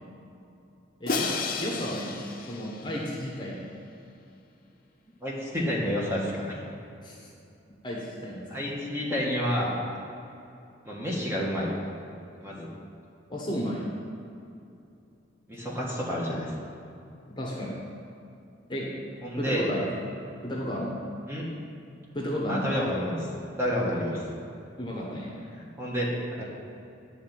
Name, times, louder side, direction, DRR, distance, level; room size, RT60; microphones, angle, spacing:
voice 1, 1.0-2.2 2.5-3.6 7.0-7.3 7.8-8.7 13.3-13.9 17.4-17.8 18.7-18.9 19.4-19.8 20.4-21.0 22.1-22.8 24.0-24.2 24.8-25.3, equal, 25° left, -3 dB, 1.1 m, -33 dB
Crash cymbal, 1.1-3.3, left 4 dB, 45° left, 0.7 m, -32 dB
voice 2, 5.2-6.6 8.5-9.7 10.8-11.7 12.4-12.7 15.5-16.5 19.2-19.7 21.3-21.5 22.5-24.2 25.8-26.1 26.3-26.4, equal, 15° right, -5 dB, 1.5 m, -29 dB
10.0 x 4.0 x 7.5 m, 2.7 s
head